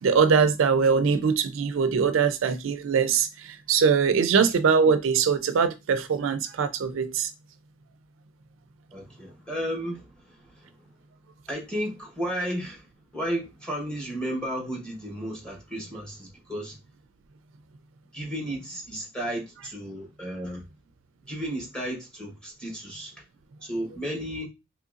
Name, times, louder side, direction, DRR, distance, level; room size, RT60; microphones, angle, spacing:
voice 1, 0.0-7.3, right 6 dB, 75° right, 0.4 m, -22 dB
voice 2, 8.9-10.7 11.5-12.9 13.1-16.8 18.1-20.6 21.3-23.1 23.6-24.5, equal, 5° left, 1.1 m, -33 dB
3.8 x 3.1 x 2.4 m
head